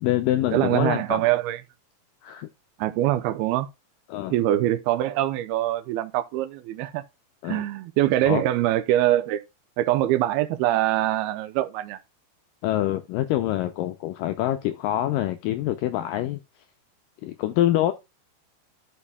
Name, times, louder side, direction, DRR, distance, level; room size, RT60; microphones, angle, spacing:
voice 1, 0.0-1.2 2.2-2.5 4.1-4.4 7.4-7.6 8.2-8.4 12.6-16.4 17.2-17.9, left 13 dB, 80° left, 2.0 m, -25 dB
voice 2, 0.5-1.6 2.8-3.7 4.3-7.0 7.5-9.4 9.8-12.0, right 14 dB, 85° right, 2.6 m, -23 dB
13.5 x 5.6 x 2.3 m
omnidirectional pair, 4.5 m